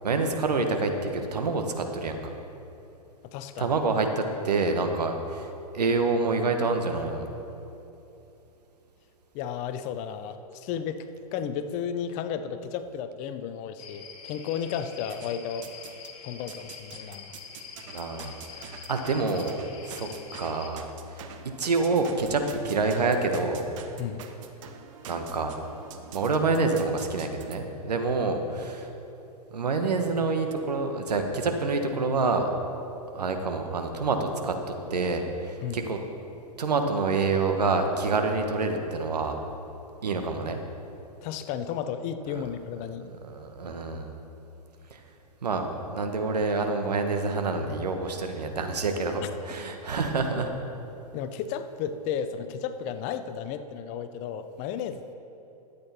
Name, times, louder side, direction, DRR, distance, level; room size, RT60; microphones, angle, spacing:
voice 1, 0.0-2.2 3.6-5.5 5.7-7.3 17.9-19.5 19.8-20.1 20.4-20.8 21.1-21.2 21.6-23.7 25.1-25.5 26.1-28.9 29.5-32.5 33.1-34.5 34.9-36.0 36.6-39.4 40.0-40.6 42.3-42.4 43.0-44.1 44.9-45.0 45.4-50.5, right 3 dB, 80° right, 5 dB, 1.3 m, -27 dB
voice 2, 3.2-3.7 9.3-11.1 11.3-15.7 16.2-17.3 24.0-24.3 35.6-35.8 41.2-43.1 43.6-43.8 51.1-55.1, left 8 dB, 35° left, 10 dB, 0.7 m, -33 dB
sound 1, 13.8-20.7, left 6 dB, 55° left, 1.9 m, -45 dB
sound 2, 15.1-16.1 16.5-27.6, right 8 dB, 55° right, 1.0 m, -46 dB
13.0 x 8.5 x 4.4 m, 2.9 s
hypercardioid pair, 110°, 20 cm